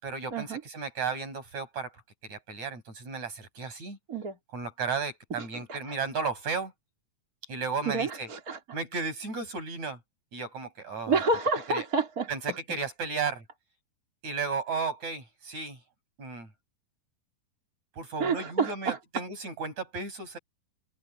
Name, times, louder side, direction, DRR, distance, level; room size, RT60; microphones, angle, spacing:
voice 1, 0.0-1.9 2.3-4.0 4.5-6.7 7.5-8.3 8.7-10.0 10.3-11.2 11.7-11.9 12.3-13.4 14.2-15.8 16.2-16.5 18.0-20.4, right 5 dB, 50° right, 7.6 m, -34 dB
voice 2, 7.9-8.6 11.1-12.6 18.2-19.2, right 3 dB, 25° right, 3.6 m, -29 dB
open air
omnidirectional pair, 4.3 m